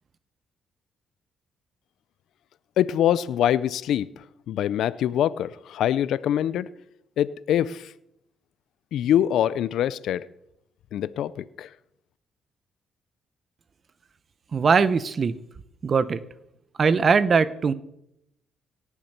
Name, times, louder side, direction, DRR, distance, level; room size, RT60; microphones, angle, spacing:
voice 1, 2.8-6.7 7.2-7.9 8.9-10.3 10.9-11.7, left 11 dB, 75° left, 17 dB, 0.5 m, -24 dB
voice 2, 14.5-15.4 15.8-16.2 16.8-17.7, right 5 dB, 45° right, 15 dB, 0.7 m, -20 dB
18.0 x 7.3 x 6.7 m, 0.78 s
cardioid pair, 90°, 0 cm